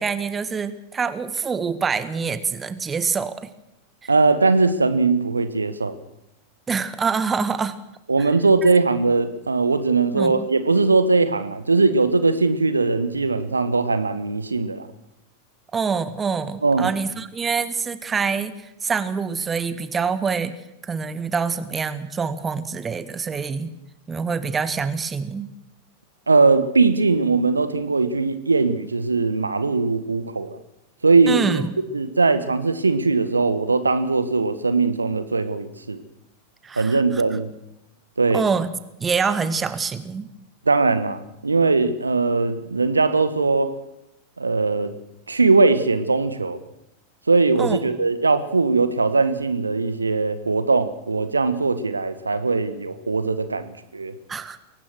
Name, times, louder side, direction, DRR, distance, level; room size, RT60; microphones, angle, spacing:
voice 1, 0.0-3.5 4.0-4.1 6.7-7.7 8.2-8.3 8.6-8.7 10.1-10.4 15.7-20.5 20.8-23.7 24.1-25.5 31.3-31.7 36.6-37.2 38.3-38.7 39.0-40.3 47.6-47.8 54.3-54.6, right 5 dB, 20° right, 13 dB, 1.5 m, -25 dB
voice 2, 4.1-6.0 8.1-14.9 16.6-16.9 26.3-30.6 31.0-31.6 31.9-36.0 36.8-37.5 38.2-38.4 40.6-43.7 44.4-44.9 45.3-46.6 47.3-54.1, right 3 dB, 80° right, 13 dB, 1.4 m, -20 dB
23.0 x 18.0 x 6.3 m, 0.86 s
figure-of-eight pair, 90°, 0 cm